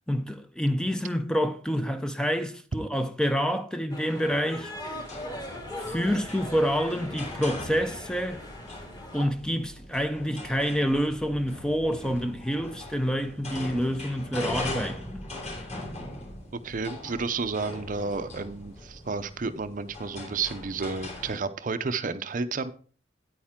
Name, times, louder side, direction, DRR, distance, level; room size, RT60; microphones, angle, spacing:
voice 1, 0.1-4.7 5.8-8.4 9.1-15.0, equal, 5° left, 0.5 m, -27 dB
sound 1, 3.9-9.3, left 1 dB, 20° left, 1.6 m, -40 dB
sound 2, 4.7-21.4, left 1 dB, 35° left, 3.0 m, -40 dB
voice 2, 16.6-22.7, right 4 dB, 45° right, 0.5 m, -31 dB
9.5 x 8.7 x 3.7 m
head